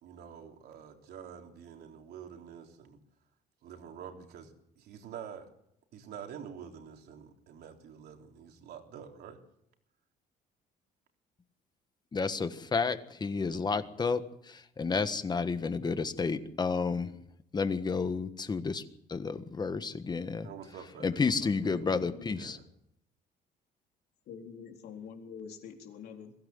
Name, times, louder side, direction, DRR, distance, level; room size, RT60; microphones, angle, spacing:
voice 1, 0.0-3.0 3.6-5.5 5.9-9.4 20.4-21.9 22.3-22.6, right 8 dB, 70° right, 3 dB, 3.6 m, -47 dB
voice 2, 12.1-14.2 14.5-17.1 17.5-18.8 19.1-20.5 21.0-22.6, left 4 dB, 25° left, 11 dB, 1.5 m, -31 dB
voice 3, 21.4-22.4 24.3-26.3, left 6 dB, 70° left, 3 dB, 4.0 m, -46 dB
22.5 x 16.0 x 7.9 m, 0.76 s
cardioid pair, 110°, 17 cm